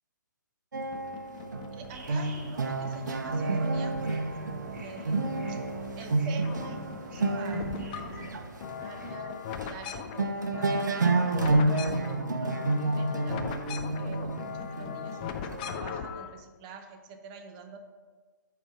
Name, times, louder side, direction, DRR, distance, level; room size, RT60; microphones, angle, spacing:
sound 1, 0.7-8.4 9.0-9.2 9.5-9.9 10.2-15.8, right 2 dB, 65° right, 0.6 m, -30 dB
sound 2, 0.9-2.4 2.9-4.4 4.8-6.1 6.3-16.3, left 7 dB, 25° left, 0.4 m, -40 dB
voice 1, 1.7-5.6 6.0-9.4 9.7-13.4 14.0-17.8, right 5 dB, 25° right, 5 dB, 0.6 m, -47 dB
sound 3, 1.9-9.2, right 2 dB, 50° right, 1.1 m, -47 dB
8.7 x 3.3 x 5.0 m, 1.4 s
figure-of-eight pair, 130°, 11 cm